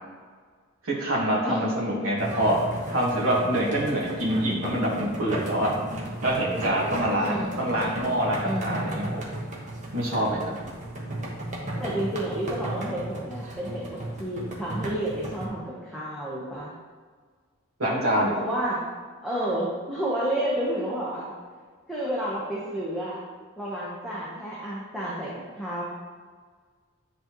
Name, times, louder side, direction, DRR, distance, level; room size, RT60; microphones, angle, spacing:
voice 1, 0.8-2.6 2.9-5.7 6.2-9.2 9.9-10.5 17.8-18.3, right 1 dB, 90° right, -3 dB, 1.7 m, -25 dB
sound 1, 2.2-15.5, right 1 dB, 35° right, 1.1 m, -35 dB
voice 2, 7.2-7.9 8.4-9.2 11.8-16.7 18.3-18.8 19.2-21.3 21.9-23.2 23.6-25.8, right 1 dB, ahead, -8 dB, 1.0 m, -30 dB
9.8 x 4.0 x 3.1 m, 1.6 s
head